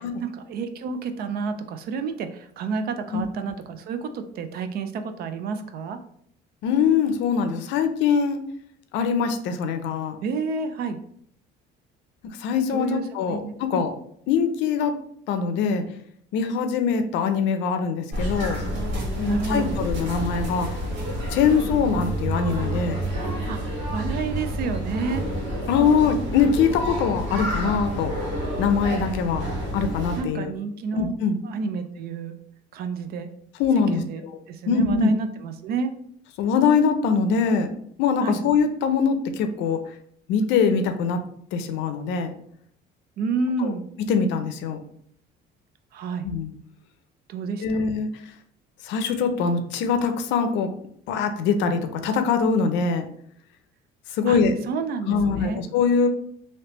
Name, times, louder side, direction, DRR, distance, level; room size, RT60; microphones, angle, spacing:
voice 1, 0.0-6.0 10.2-11.0 12.7-13.8 19.2-19.8 23.5-23.6 23.9-25.2 30.2-31.1 31.4-32.3 32.7-33.3 33.9-34.2 34.5-35.9 38.2-38.4 43.2-43.9 45.9-46.3 47.3-47.8 54.3-54.4 54.7-55.6, right 4 dB, 55° right, 9 dB, 0.4 m, -30 dB
voice 2, 6.6-8.4 8.9-10.2 12.4-13.9 14.3-15.0 15.3-15.8 16.3-18.6 19.2-20.7 21.3-23.0 25.7-28.1 28.6-29.5 29.7-30.5 30.9-31.4 33.6-34.4 34.7-35.1 36.4-37.7 38.0-39.8 40.3-41.2 41.5-42.3 43.6-43.7 44.1-44.8 46.2-46.5 47.6-48.1 48.8-50.7 51.1-53.0 54.1-54.6 55.1-56.1, left 6 dB, 75° left, 8 dB, 0.5 m, -23 dB
sound 1, 18.1-30.2, equal, 75° right, 1.1 m, -29 dB
3.3 x 2.8 x 2.9 m, 0.66 s
cardioid pair, 130°, 19 cm